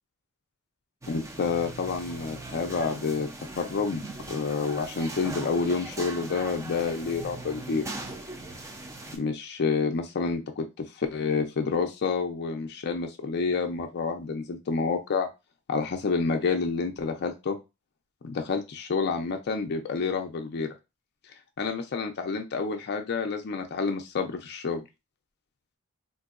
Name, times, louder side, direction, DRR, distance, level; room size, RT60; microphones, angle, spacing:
sound 1, 1.0-9.2, right 2 dB, 15° right, 0.5 m, -40 dB
voice 1, 1.1-3.3 3.6-4.0 4.3-7.8 9.1-10.7 11.0-15.3 15.7-17.6 18.2-20.7 21.6-24.8, left 4 dB, 50° left, 4 dB, 0.5 m, -28 dB
3.8 x 2.6 x 2.4 m, 0.25 s
head